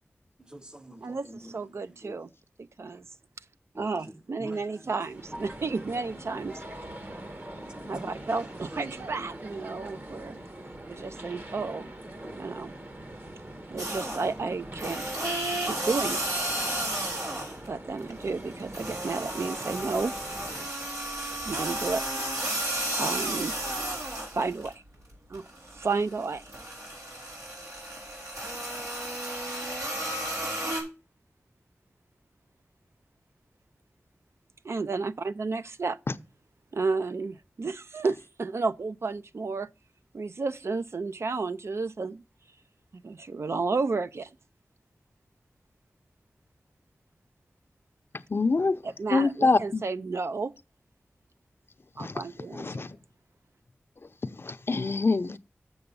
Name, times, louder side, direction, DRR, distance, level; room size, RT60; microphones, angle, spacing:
voice 1, 0.5-2.2 3.7-5.8 6.5-6.7 7.1-9.4, right 1 dB, 20° right, 0.7 m, -47 dB
voice 2, 1.0-2.3 2.6-3.1 3.8-6.6 7.9-10.4 10.9-11.9 12.4-12.7 13.7-15.0 15.6-16.3 17.7-20.1 21.4-22.0 22.9-23.5 24.3-24.7 25.3-25.4 25.7-26.5 34.6-36.0 36.7-39.7 40.1-42.2 42.9-44.3 48.8-50.5 52.0-52.8, right 4 dB, 70° right, 0.4 m, -32 dB
sound 1, 5.0-20.7, right 1 dB, 45° right, 1.3 m, -43 dB
sound 2, 13.8-14.4 14.8-17.7 18.0-24.7 25.1-30.8, right 1 dB, 90° right, 3.9 m, -33 dB
voice 3, 48.3-48.8 49.1-49.8 52.0-52.2 52.5-53.0 54.4-55.4, left 3 dB, 55° left, 0.5 m, -25 dB
7.0 x 6.6 x 5.4 m
wide cardioid pair, 60°, 5 cm